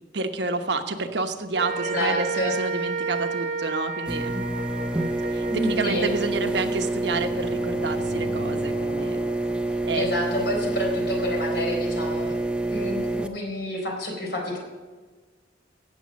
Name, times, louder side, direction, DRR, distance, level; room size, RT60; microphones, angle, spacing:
voice 1, 0.1-4.5 5.3-9.2 9.9-10.1, right 3 dB, 70° right, 7 dB, 1.1 m, -29 dB
sound 1, 1.5-8.0, right 4 dB, 40° right, 1.2 m, -32 dB
voice 2, 1.8-2.5 5.5-6.1 9.9-12.4 12.7-14.6, left 1 dB, 60° left, 0 dB, 4.0 m, -29 dB
sound 2, 4.0-13.3, right 2 dB, 5° right, 0.6 m, -27 dB
sound 3, 7.1-11.0, left 3 dB, 40° left, 0.9 m, -40 dB
17.0 x 7.5 x 5.3 m, 1.4 s
head